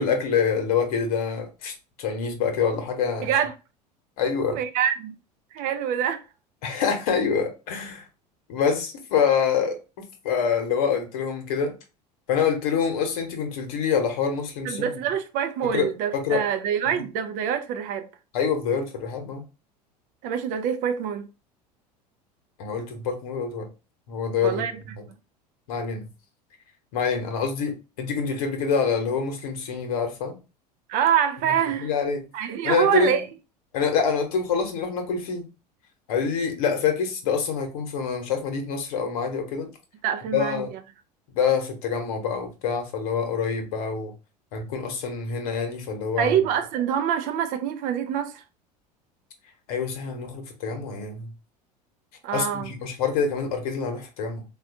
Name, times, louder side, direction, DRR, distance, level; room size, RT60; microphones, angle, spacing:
voice 1, 0.0-3.3 4.2-4.6 6.6-8.1 8.5-11.7 12.3-14.9 15.6-16.4 18.3-19.4 22.6-23.7 24.1-24.6 24.9-25.0 25.7-26.1 26.9-30.4 31.8-32.2 32.6-33.1 33.7-35.5 36.1-39.7 40.3-40.7 41.3-44.1 44.5-46.4 49.7-51.3 52.3-54.4, left 6 dB, 60° left, 1.0 m, -26 dB
voice 2, 3.2-3.5 4.5-5.1 5.5-6.2 14.6-18.1 20.2-21.3 24.4-24.7 30.9-31.9 32.3-33.2 40.0-40.6 46.2-48.4 52.2-52.7, right 9 dB, 40° right, 0.4 m, -25 dB
4.1 x 2.3 x 2.7 m
figure-of-eight pair, 75°, 21 cm